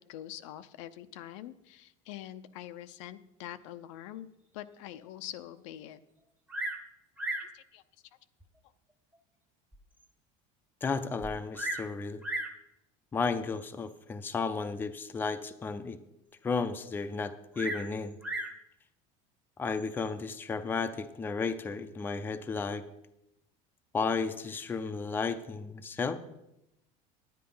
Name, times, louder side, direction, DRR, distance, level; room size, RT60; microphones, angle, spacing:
voice 1, 0.0-4.3 4.5-6.0 7.4-7.8, left 12 dB, 85° left, 11 dB, 0.7 m, -45 dB
Bird vocalization bird call bird song, 6.5-6.9 7.2-7.6 8.4-8.5 9.1-9.2 9.7-9.8 10.0-10.1 11.2-11.9 12.2-12.6 13.6-13.9 17.5-18.6 19.7-20.1, right 1 dB, 10° right, 0.9 m, -36 dB
voice 2, 10.8-12.2 13.1-16.0 16.4-18.2 19.6-22.9 23.9-26.2, left 4 dB, 15° left, 9 dB, 0.5 m, -33 dB
10.0 x 9.4 x 5.5 m, 0.87 s
cardioid pair, 160°, 16 cm